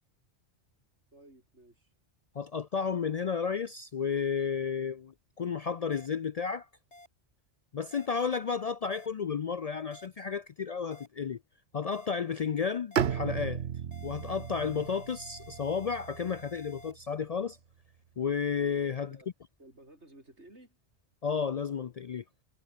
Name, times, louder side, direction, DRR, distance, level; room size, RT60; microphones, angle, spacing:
voice 1, 1.1-1.9 19.0-19.3 19.6-20.8, right 1 dB, 85° right, 7.3 m, -55 dB
voice 2, 2.3-6.7 7.7-11.4 11.7-13.6 14.0-17.6 18.2-19.2 21.2-22.2, left 6 dB, 50° left, 0.4 m, -32 dB
sound 1, 5.9-6.1 6.9-7.1 7.9-8.1 8.9-9.1 9.9-10.1 10.9-11.1 11.9-12.1 12.9-13.1 13.9-16.9, left 1 dB, 80° left, 7.2 m, -52 dB
Bowed string instrument, 13.0-16.9, right 8 dB, 70° right, 1.2 m, -35 dB
omnidirectional pair, 1.1 m